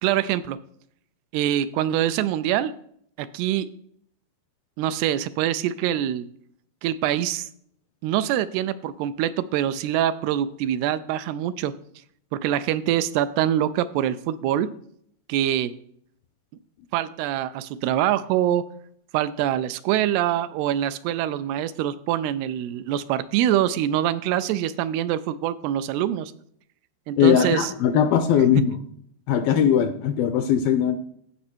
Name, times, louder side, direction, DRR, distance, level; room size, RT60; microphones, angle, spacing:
voice 1, 0.0-0.6 1.3-2.7 3.2-3.7 4.8-6.3 6.8-7.5 8.0-11.7 12.3-14.7 15.3-15.7 16.9-18.6 19.1-26.3 27.1-27.7, right 11 dB, 85° right, 14 dB, 2.5 m, -24 dB
voice 2, 27.2-28.8 29.3-30.9, left 8 dB, 80° left, 8 dB, 2.2 m, -20 dB
15.0 x 5.3 x 4.4 m, 0.65 s
omnidirectional pair, 4.7 m